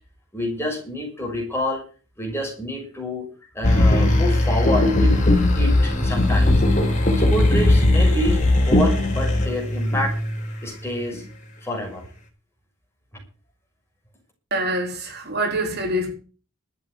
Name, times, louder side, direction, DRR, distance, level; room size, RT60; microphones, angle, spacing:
voice 1, 0.3-1.8 2.2-3.3 3.5-5.2 5.5-6.6 6.9-10.1 10.6-11.2 11.6-12.1, left 1 dB, 10° left, 6.3 m, -28 dB
sound 1, 3.6-10.6 11.1-11.2, left 1 dB, 35° left, 4.2 m, -18 dB
voice 2, 14.5-16.1, right 1 dB, 50° right, 4.3 m, -25 dB
13.0 x 8.6 x 8.3 m
head